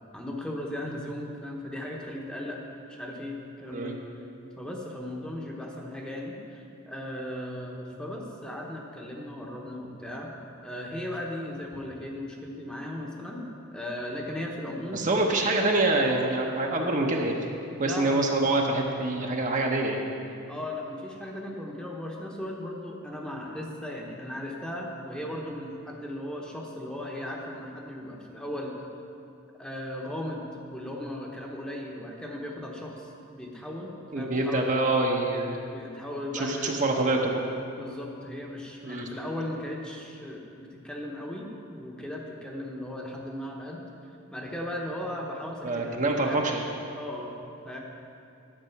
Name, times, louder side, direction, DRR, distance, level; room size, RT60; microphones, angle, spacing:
voice 1, 0.1-2.6 2.9-4.0 4.6-13.5 13.7-15.4 17.8-18.3 20.5-28.9 29.6-34.7 35.7-36.8 37.8-43.8 44.3-46.4 46.9-47.3 47.6-47.8, left 1 dB, 5° left, -1 dB, 1.0 m, -37 dB
voice 2, 14.9-17.4 17.8-20.0 34.1-35.6 36.3-37.4 38.8-39.1 45.6-46.6, right 2 dB, 35° right, 0 dB, 0.8 m, -26 dB
11.0 x 8.2 x 5.8 m, 2.6 s
head